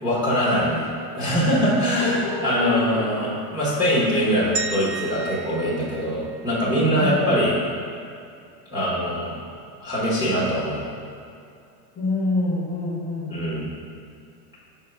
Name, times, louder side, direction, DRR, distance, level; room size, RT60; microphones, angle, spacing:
voice 1, 0.0-0.9 1.1-2.2 2.4-7.5 8.7-9.3 9.8-10.8 13.3-13.7, equal, 10° right, -9 dB, 0.9 m, -22 dB
voice 2, 1.9-3.0 6.9-7.3 11.9-13.6, left 2 dB, 15° left, -8 dB, 0.9 m, -27 dB
sound 1, 4.6-6.8, right 5 dB, 45° right, 0.4 m, -33 dB
5.7 x 3.6 x 5.4 m, 2.4 s
supercardioid pair, 175°, 49 cm